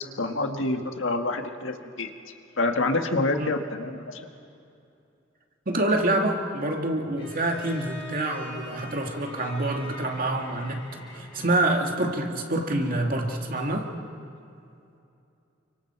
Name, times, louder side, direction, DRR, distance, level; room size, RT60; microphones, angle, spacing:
voice 1, 0.2-2.1 2.6-4.2, left 2 dB, 85° left, 4 dB, 1.7 m, -27 dB
voice 2, 5.7-10.8 11.1-13.9, right 1 dB, 45° right, 2 dB, 2.4 m, -26 dB
Bowed string instrument, 7.2-12.0, left 2 dB, 30° left, 4.4 m, -44 dB
29.5 x 25.0 x 4.7 m, 2.6 s
head